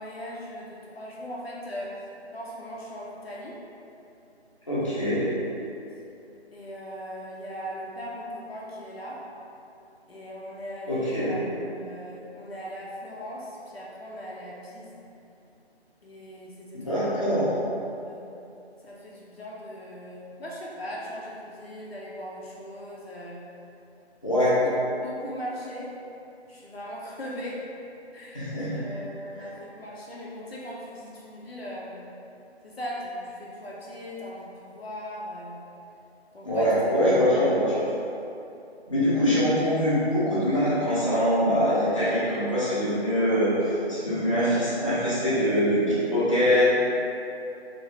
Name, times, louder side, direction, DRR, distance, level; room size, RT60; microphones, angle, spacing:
voice 1, 0.0-1.9 2.3-3.6 4.8-5.0 6.5-9.2 10.1-15.0 16.0-17.3 17.8-18.2 18.8-23.4 24.3-26.0 26.5-27.6 28.1-32.0 32.6-35.6 36.3-36.9 37.5-37.8, equal, 65° left, -5 dB, 0.7 m, -39 dB
voice 2, 4.7-5.3 10.9-11.3 16.7-17.5 24.2-24.5 28.3-28.9 36.4-37.8 38.9-46.7, equal, 30° left, -12 dB, 0.7 m, -23 dB
3.2 x 2.9 x 2.8 m, 2.7 s
figure-of-eight pair, 180°, 33 cm